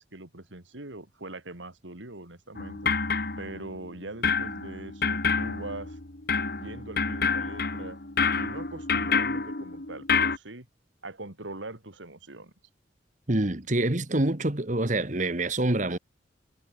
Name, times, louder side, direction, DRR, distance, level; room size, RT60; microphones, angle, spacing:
voice 1, 0.0-2.9 3.4-6.0 6.6-8.0 8.4-10.7 11.0-12.5, right 2 dB, 85° right, 3.3 m, -42 dB
sound 1, 2.6-3.9 4.2-10.4, left 5 dB, 55° left, 1.9 m, -28 dB
voice 2, 13.3-16.0, right 2 dB, 40° right, 1.7 m, -26 dB
head